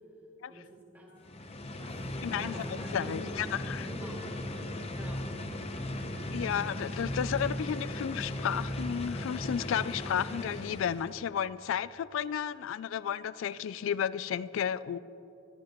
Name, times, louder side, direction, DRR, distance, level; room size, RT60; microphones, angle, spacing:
voice 1, 0.5-1.1 1.8-1.9 2.3-3.3 3.9-4.2 4.9-5.2, right 1 dB, 10° right, -4 dB, 2.5 m, -46 dB
sound 1, 1.2-11.2, left 1 dB, 30° left, 0.7 m, -37 dB
voice 2, 2.2-2.6 2.9-3.9 6.3-15.0, left 8 dB, 65° left, 18 dB, 0.3 m, -32 dB
21.0 x 13.0 x 3.0 m, 3.0 s
head